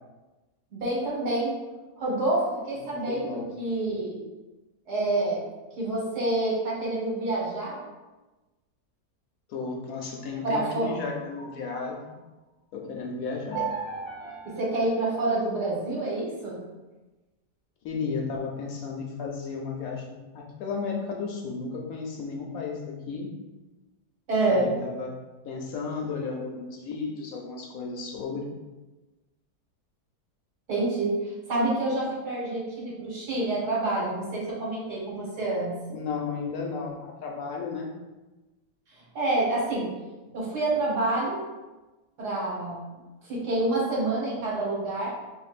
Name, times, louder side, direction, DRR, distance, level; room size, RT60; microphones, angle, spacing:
voice 1, 0.7-1.6 2.0-4.2 4.9-5.4 5.8-7.8 10.4-10.9 13.5-13.6 14.4-16.6 24.3-24.7 30.7-35.8 38.9-39.9 40.3-41.5 42.2-42.8 43.2-45.1, right 2 dB, 75° right, -5 dB, 1.9 m, -27 dB
voice 2, 2.8-3.5 9.5-12.0 12.7-13.6 17.8-23.3 24.5-25.1 25.4-28.5 35.9-37.9, left 4 dB, 70° left, 0 dB, 1.0 m, -34 dB
sound 1, 10.0-12.2 13.5-15.8, right 5 dB, ahead, 0.9 m, -39 dB
5.1 x 3.1 x 2.4 m, 1.1 s
omnidirectional pair, 1.7 m